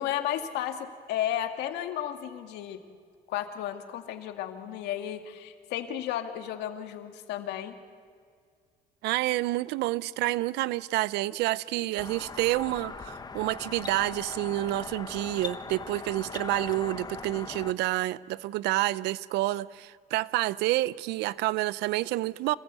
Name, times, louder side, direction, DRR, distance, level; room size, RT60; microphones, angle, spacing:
voice 1, 0.0-2.8 3.3-7.8, left 11 dB, 85° left, 2.0 m, -33 dB
voice 2, 9.0-22.5, right 17 dB, 85° right, 0.6 m, -29 dB
sound 1, 12.0-17.7, left 4 dB, 25° left, 1.3 m, -40 dB
27.5 x 18.0 x 8.3 m
cardioid pair, 110°, 17 cm